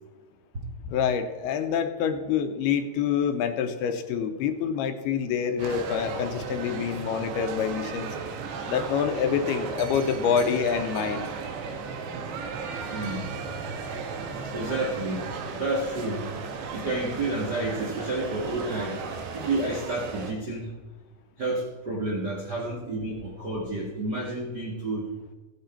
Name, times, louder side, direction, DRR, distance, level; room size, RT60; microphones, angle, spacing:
voice 1, 0.9-8.2 8.7-11.3, left 7 dB, 80° left, 8 dB, 2.6 m, -26 dB
sound 1, 5.6-20.3, right 5 dB, 90° right, 3.6 m, -35 dB
voice 2, 12.8-13.3 14.2-16.3 16.7-20.7 21.4-25.1, right 2 dB, 70° right, -3 dB, 0.9 m, -30 dB
15.5 x 9.4 x 4.4 m, 1.2 s
omnidirectional pair, 4.9 m